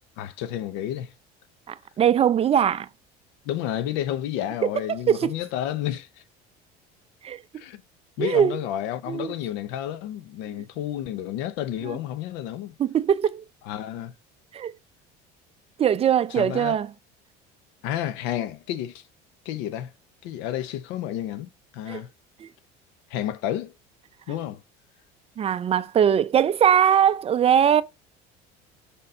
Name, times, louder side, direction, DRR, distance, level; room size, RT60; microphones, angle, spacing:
voice 1, 0.2-1.1 3.4-6.2 7.5-7.8 8.2-12.7 13.6-14.1 16.3-16.8 17.8-19.0 19.4-19.9 20.2-22.1 23.1-23.7 24.3-24.6, left 11 dB, 75° left, 0.7 m, -31 dB
voice 2, 1.7-2.9 5.1-5.3 7.2-7.4 8.2-8.6 9.1-9.3 10.5-10.6 11.9-12.0 12.8-13.4 14.5-14.7 15.8-16.9 21.9-22.0 22.4-22.5 25.4-27.8, right 9 dB, 30° right, 0.5 m, -21 dB
5.3 x 4.1 x 5.4 m
supercardioid pair, 105°, 20 cm